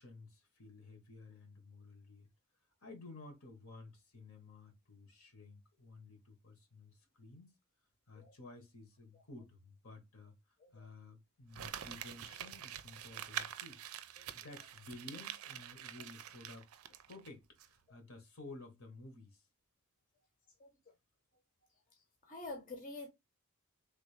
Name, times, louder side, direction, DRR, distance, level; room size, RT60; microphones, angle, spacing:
voice 1, 0.0-2.3 2.8-7.6 8.1-16.7 17.1-19.4, left 2 dB, 70° left, 1.4 m, -54 dB
Crumpling crinkling, 11.5-17.3 17.6-17.7, right 10 dB, 75° right, 0.4 m, -46 dB
voice 2, 22.2-23.1, left 2 dB, 35° left, 0.8 m, -47 dB
3.4 x 2.6 x 3.2 m
head